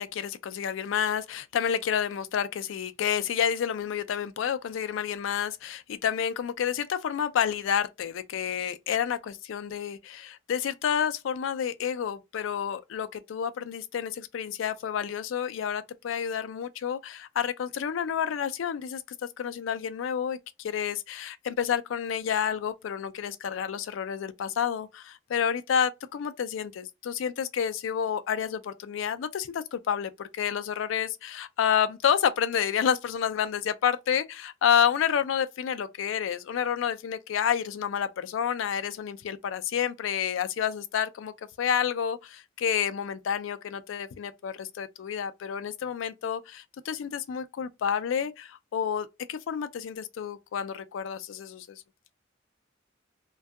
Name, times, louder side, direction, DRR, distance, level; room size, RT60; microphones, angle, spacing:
voice 1, 0.0-19.0 19.4-41.3 41.6-51.8, left 8 dB, 85° left, 0.3 m, -29 dB
2.6 x 2.2 x 2.3 m
head